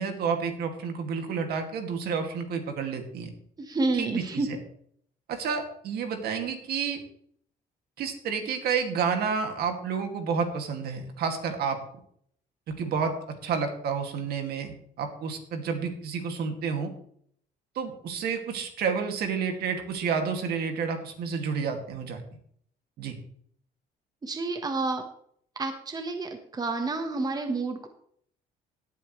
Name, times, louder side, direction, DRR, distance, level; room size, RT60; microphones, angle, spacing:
voice 1, 0.0-3.3 3.9-4.6 5.3-7.0 8.0-11.8 12.8-16.9 17.8-22.2 23.0-23.1, right 6 dB, 70° right, 4 dB, 2.3 m, -30 dB
voice 2, 3.6-4.5 24.2-25.0 25.5-27.9, right 3 dB, 25° right, 5 dB, 1.4 m, -29 dB
17.5 x 8.7 x 3.2 m, 0.65 s
cardioid pair, 110°, 17 cm